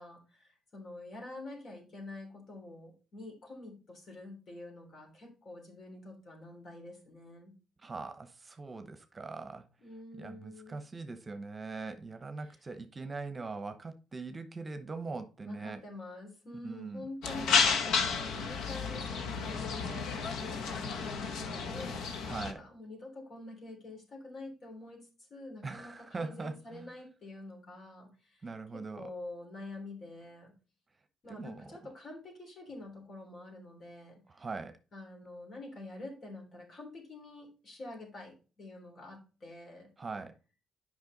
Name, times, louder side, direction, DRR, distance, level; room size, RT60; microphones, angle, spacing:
voice 1, 0.0-7.5 9.8-10.8 12.4-12.6 15.4-28.5 28.7-30.5 31.2-34.2 34.9-39.9, left 2 dB, 55° left, 3.3 m, -47 dB
voice 2, 7.8-9.6 10.2-15.8 16.6-17.1 22.2-22.6 25.6-26.9 28.4-29.1 31.3-31.7 34.3-34.8 40.0-40.3, right 3 dB, 30° right, 0.9 m, -41 dB
sound 1, 17.2-22.5, left 5 dB, 85° left, 0.9 m, -32 dB
8.0 x 5.4 x 3.9 m
cardioid pair, 90°, 0 cm